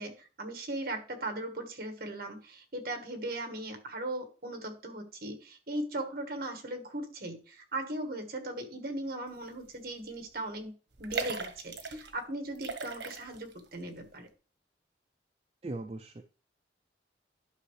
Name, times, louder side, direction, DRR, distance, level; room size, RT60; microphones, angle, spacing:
voice 1, 0.0-14.3, right 1 dB, 55° right, 5 dB, 1.5 m, -38 dB
sound 1, 9.6-9.9 10.1-10.2 10.9-12.1 12.5-13.6 14.0-14.1, right 4 dB, 75° right, 1.2 m, -38 dB
voice 2, 15.6-16.2, right 2 dB, 35° right, 5 dB, 0.5 m, -39 dB
11.5 x 5.5 x 3.3 m, 0.37 s
head